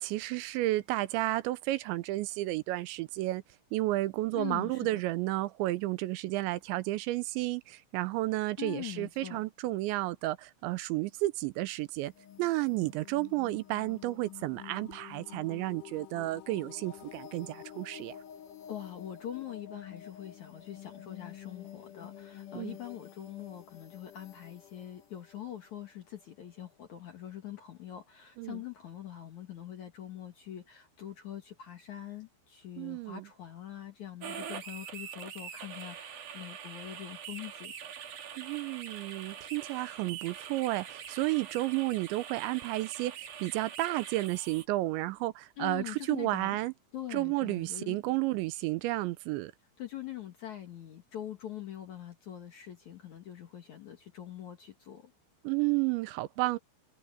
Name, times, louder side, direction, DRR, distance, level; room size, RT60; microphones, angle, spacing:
voice 1, 0.0-3.4 3.7-12.1 12.4-18.2 22.5-22.8 28.4-28.6 32.8-33.3 38.4-46.7 47.1-49.5 55.4-56.6, right 18 dB, 85° right, 3.0 m, -32 dB
voice 2, 4.3-5.0 8.6-9.4 18.7-37.7 45.6-46.6 46.9-48.0 49.8-55.1, left 12 dB, 60° left, 2.1 m, -43 dB
sound 1, 11.9-26.6, left 11 dB, 80° left, 1.9 m, -50 dB
sound 2, 34.2-44.7, right 8 dB, 50° right, 3.0 m, -44 dB
omnidirectional pair, 5.3 m